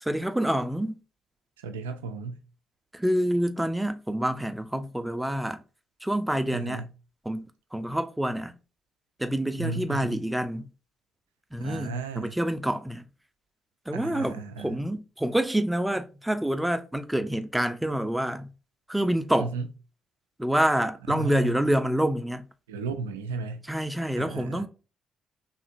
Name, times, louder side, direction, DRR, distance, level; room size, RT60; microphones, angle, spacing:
voice 1, 0.0-1.0 2.9-5.6 6.0-6.8 7.3-8.6 9.2-10.7 11.5-13.0 13.9-18.5 18.9-19.5 20.4-22.4 23.7-24.7, right 1 dB, 5° right, 0.4 m, -27 dB
voice 2, 1.6-2.4 6.5-6.9 9.6-10.2 11.6-12.4 13.9-14.8 19.4-19.7 21.1-21.6 22.7-23.7 24.2-24.7, right 4 dB, 85° right, 0.3 m, -34 dB
2.7 x 2.5 x 2.5 m
hypercardioid pair, 45°, 0 cm